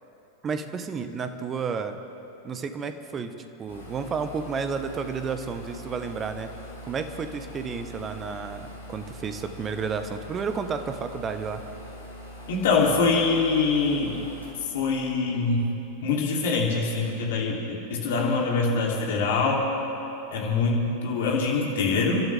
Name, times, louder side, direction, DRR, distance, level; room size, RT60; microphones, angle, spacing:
voice 1, 0.4-2.0 2.4-3.3 3.6-6.5 6.8-11.6, right 5 dB, 25° right, 9 dB, 1.0 m, -31 dB
sound 1, 3.7-16.1, left 1 dB, 75° left, 3.0 m, -43 dB
voice 2, 12.5-14.2 14.7-15.6 16.0-19.6 20.3-22.3, left 4 dB, 55° left, -2 dB, 3.0 m, -24 dB
30.0 x 12.5 x 3.5 m, 3.0 s
figure-of-eight pair, 90°, 0 cm